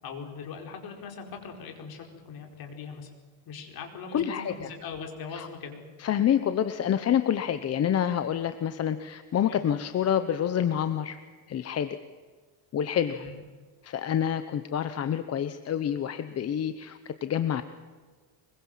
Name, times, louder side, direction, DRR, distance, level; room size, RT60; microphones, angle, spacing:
voice 1, 0.0-3.1 3.4-5.8 9.5-9.6 13.1-13.4, left 5 dB, 45° left, 3 dB, 4.9 m, -40 dB
voice 2, 4.1-4.7 5.3-5.5 6.0-11.2 11.5-12.0 12.7-13.2 13.8-17.6, left 9 dB, 30° left, 10 dB, 0.9 m, -27 dB
24.5 x 22.5 x 7.5 m, 1.5 s
cardioid pair, 155°, 48 cm